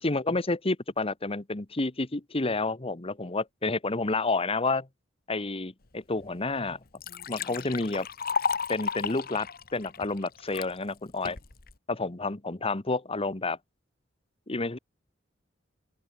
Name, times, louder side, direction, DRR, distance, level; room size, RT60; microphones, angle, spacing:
voice 1, 0.0-4.9 5.3-6.8 7.3-8.1 8.7-9.5 9.7-11.4 11.9-13.6 14.5-14.8, left 3 dB, 30° left, 1.3 m, -29 dB
Liquid, 6.2-6.3 6.7-10.7 11.3-11.7, left 6 dB, 50° left, 1.6 m, -33 dB
open air
head